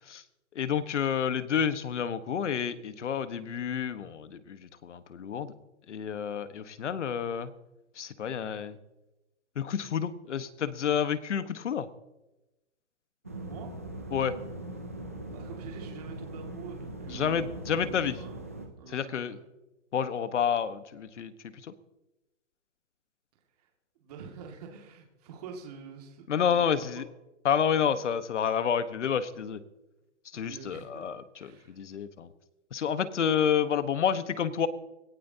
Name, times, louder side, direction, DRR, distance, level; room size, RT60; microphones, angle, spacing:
voice 1, 0.5-5.5 5.9-7.5 8.0-8.8 9.6-11.9 14.1-14.3 17.1-18.2 18.9-19.4 19.9-21.7 26.3-27.0 27.4-29.6 30.3-32.3 32.7-34.7, left 8 dB, 75° left, 12 dB, 1.3 m, -29 dB
sound 1, 13.2-18.7, right 1 dB, 15° right, 0.4 m, -40 dB
voice 2, 15.3-18.5 18.8-19.5 23.6-23.7 24.0-26.6 27.0-27.1 30.3-31.8, right 6 dB, 35° right, 1 dB, 2.2 m, -47 dB
19.5 x 17.5 x 2.8 m, 1.0 s
hypercardioid pair, 170°, 36 cm